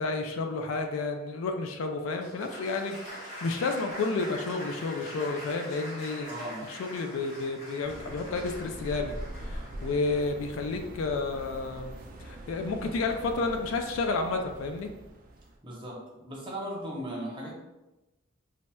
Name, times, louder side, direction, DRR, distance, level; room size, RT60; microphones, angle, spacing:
voice 1, 0.0-6.3 6.7-9.2 9.4-11.9 12.2-14.9, left 3 dB, 80° left, 4 dB, 0.3 m, -31 dB
Applause, 2.1-11.1, equal, 40° left, 1.3 m, -43 dB
voice 2, 6.3-6.6 15.6-17.5, right 1 dB, 25° right, -4 dB, 0.7 m, -37 dB
sound 1, 7.8-15.6, right 1 dB, 40° right, 0.3 m, -43 dB
4.0 x 2.1 x 2.2 m, 1.0 s
head